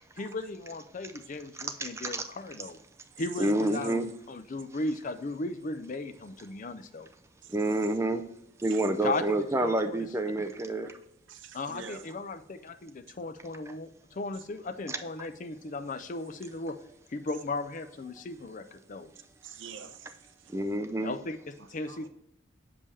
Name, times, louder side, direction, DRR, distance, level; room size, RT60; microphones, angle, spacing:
voice 1, 0.1-2.8 3.2-7.1 9.0-10.1 11.5-16.8 17.1-19.1 21.0-22.1, left 2 dB, 40° left, 0.5 m, -36 dB
voice 2, 1.8-2.3 3.4-4.1 7.5-8.2 8.6-10.9 14.9-15.0 20.5-21.1, right 1 dB, 15° right, 0.5 m, -28 dB
voice 3, 7.4-7.9 8.7-8.8 11.3-12.1 19.4-20.5 21.9-22.1, right 6 dB, 65° right, 0.6 m, -46 dB
6.9 x 5.4 x 3.3 m
head